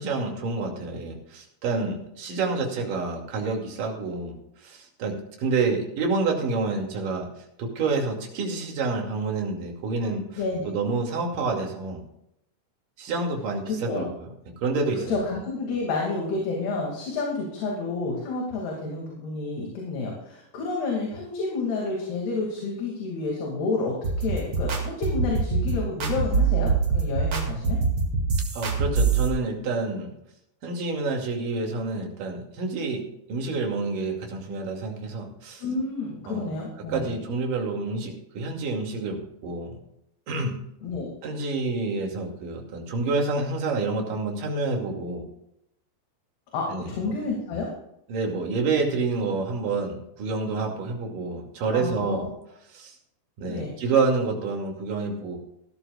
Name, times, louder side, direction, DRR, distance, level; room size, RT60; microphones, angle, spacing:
voice 1, 0.0-4.4 4.6-7.3 7.6-10.4 10.7-12.0 13.0-14.3 14.6-15.2 28.5-30.1 30.6-35.6 36.3-36.5 36.9-39.7 40.3-40.6 41.2-45.3 46.7-46.9 48.1-52.3 52.7-53.0 53.4-55.4, right 3 dB, 55° right, 1 dB, 3.8 m, -28 dB
voice 2, 10.4-10.7 13.7-14.1 15.0-27.8 35.6-37.1 40.8-41.1 46.5-47.7 51.7-52.3 53.5-53.7, left 3 dB, 70° left, -1 dB, 4.3 m, -30 dB
sound 1, 24.0-29.3, right 5 dB, 40° right, 2.4 m, -24 dB
18.5 x 13.0 x 2.4 m, 0.79 s
omnidirectional pair, 4.8 m